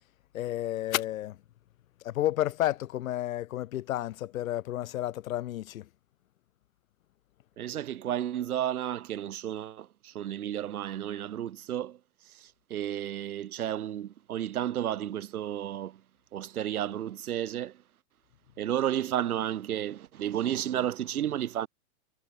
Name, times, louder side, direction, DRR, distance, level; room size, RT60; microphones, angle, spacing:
voice 1, 0.3-1.4 2.0-5.8, left 13 dB, 65° left, 1.4 m, -31 dB
voice 2, 7.6-12.0 12.3-16.0 16.3-17.8 18.6-21.7, right 11 dB, 75° right, 5.1 m, -32 dB
supercardioid pair, 160°, 44 cm